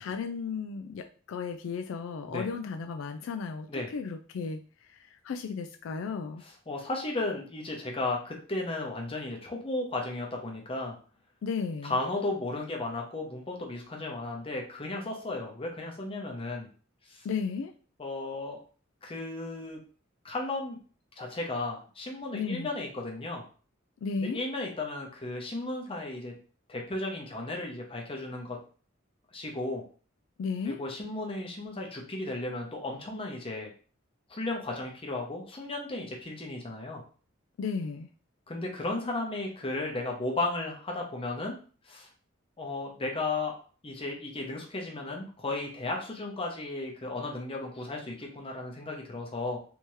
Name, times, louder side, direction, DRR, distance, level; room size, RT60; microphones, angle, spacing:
voice 1, 0.0-3.7 3.9-4.6 4.9-5.0 5.2-6.4 11.4-12.0 17.2-17.7 22.3-22.7 24.0-24.4 30.4-30.8 37.6-38.1, left 5 dB, 75° left, 5 dB, 0.3 m, -34 dB
voice 2, 6.4-10.9 11.8-16.7 17.1-17.3 18.0-18.6 19.0-19.8 20.2-20.8 21.2-23.4 24.2-26.3 26.7-28.6 29.3-29.8 30.6-33.7 34.3-37.0 38.5-41.6 41.9-42.1 42.6-43.5 43.8-49.6, left 2 dB, 30° left, 0 dB, 0.8 m, -34 dB
3.4 x 2.9 x 3.1 m, 0.40 s
head